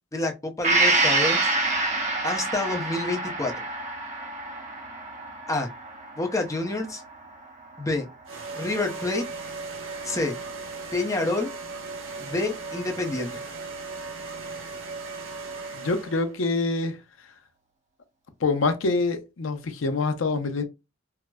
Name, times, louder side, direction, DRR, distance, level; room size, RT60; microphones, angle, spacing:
voice 1, 0.0-1.5 2.2-3.6 5.5-5.7 6.2-7.0 7.8-8.1 8.6-9.2 10.0-10.3 10.9-11.5 12.2-13.3, left 2 dB, 15° left, 0.6 m, -28 dB
Gong, 0.6-8.3 8.7-8.8, right 2 dB, 35° right, 1.0 m, -27 dB
sound 1, 8.3-16.4, right 3 dB, 70° right, 0.8 m, -37 dB
voice 2, 15.7-16.9 18.4-20.6, left 3 dB, 70° left, 0.6 m, -25 dB
4.5 x 2.0 x 2.2 m
head